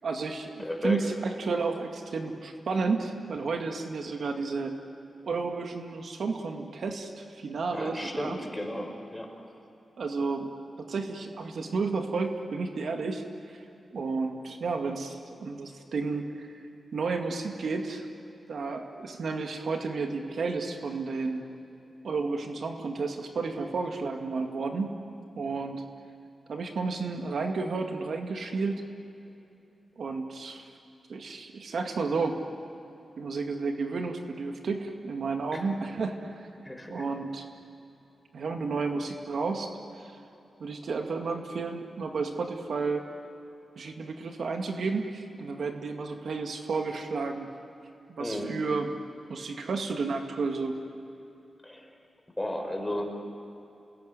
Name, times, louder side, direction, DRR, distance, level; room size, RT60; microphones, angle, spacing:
voice 1, 0.0-4.8 5.2-8.4 10.0-10.5 10.8-13.6 13.9-16.5 16.9-18.1 18.5-21.4 22.0-25.0 25.4-25.8 26.5-28.8 30.0-30.7 31.1-32.4 33.2-36.5 36.9-37.5 38.3-39.7 40.0-40.2 40.6-43.1 43.8-47.5 48.1-48.9 49.3-50.8, right 4 dB, 75° right, 4 dB, 2.1 m, -32 dB
voice 2, 0.6-1.0 7.7-9.3 35.5-35.7 36.6-37.0 48.2-48.5 51.6-51.9 52.4-53.2, left 1 dB, 10° left, 3 dB, 4.5 m, -34 dB
28.0 x 20.0 x 9.5 m, 2.9 s
cardioid pair, 85°, 0 cm